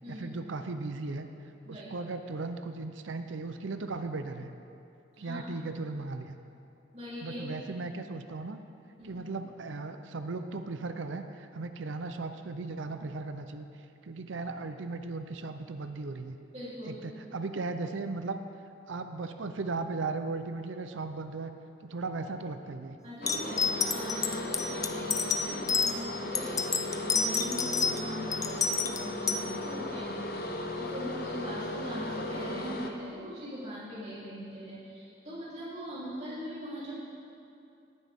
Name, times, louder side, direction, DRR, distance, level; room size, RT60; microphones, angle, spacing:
voice 1, 0.1-1.3 1.7-4.5 5.2-6.4 7.2-8.6 9.0-13.7 14.0-16.4 16.9-18.4 18.9-21.5 21.8-23.0, right 3 dB, 85° right, 8 dB, 0.6 m, -37 dB
voice 2, 6.9-7.5 9.0-9.1 16.5-17.0 23.0-37.0, equal, 35° right, -10 dB, 3.4 m, -41 dB
sound 1, 23.2-32.9, left 1 dB, 50° left, 0.8 m, -36 dB
sound 2, 23.3-25.9 26.3-28.0 28.3-29.4, left 5 dB, 20° left, 0.4 m, -28 dB
18.0 x 9.6 x 3.6 m, 2.6 s
head